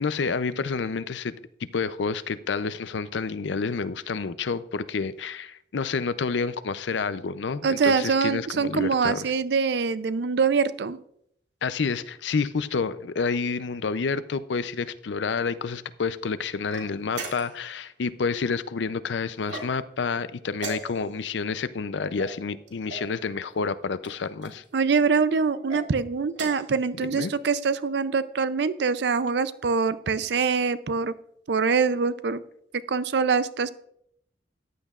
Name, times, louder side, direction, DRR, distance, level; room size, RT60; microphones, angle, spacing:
voice 1, 0.0-1.3 1.7-9.3 11.6-24.6 27.1-27.3, left 5 dB, 75° left, 0.5 m, -29 dB
voice 2, 7.6-11.0 24.7-31.1 31.5-32.4 32.7-33.7, right 5 dB, 65° right, 0.5 m, -24 dB
sound 1, 16.7-17.7 19.4-20.0 20.5-21.3 22.2-23.1 24.0-24.6 25.5-25.8 26.3-26.8, right 3 dB, 80° right, 2.5 m, -38 dB
14.5 x 10.0 x 2.4 m
head